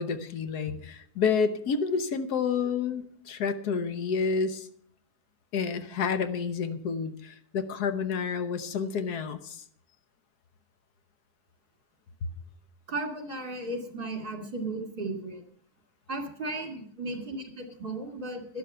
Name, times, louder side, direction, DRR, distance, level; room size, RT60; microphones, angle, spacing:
voice 1, 0.0-4.7 5.5-9.6, left 5 dB, 85° left, 10 dB, 1.5 m, -29 dB
voice 2, 12.9-15.4 16.1-18.6, right 2 dB, 35° right, 3 dB, 2.5 m, -35 dB
12.0 x 11.5 x 5.5 m, 0.63 s
omnidirectional pair, 1.6 m